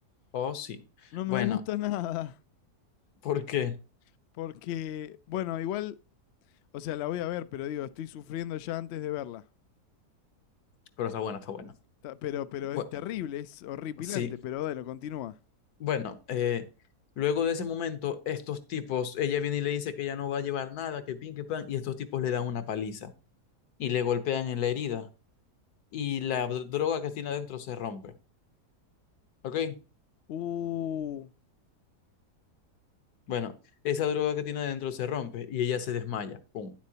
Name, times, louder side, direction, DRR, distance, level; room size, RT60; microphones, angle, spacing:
voice 1, 0.3-1.6 3.2-3.7 11.0-11.7 12.7-13.0 14.0-14.3 15.8-16.6 17.2-23.1 23.8-25.1 25.9-28.1 29.4-29.7 33.3-33.5 33.8-36.7, left 9 dB, 75° left, 1.4 m, -31 dB
voice 2, 1.1-2.4 4.4-6.0 6.7-9.4 12.0-15.3 30.3-31.3, left 12 dB, 90° left, 0.5 m, -34 dB
10.0 x 7.3 x 2.8 m
omnidirectional pair, 1.7 m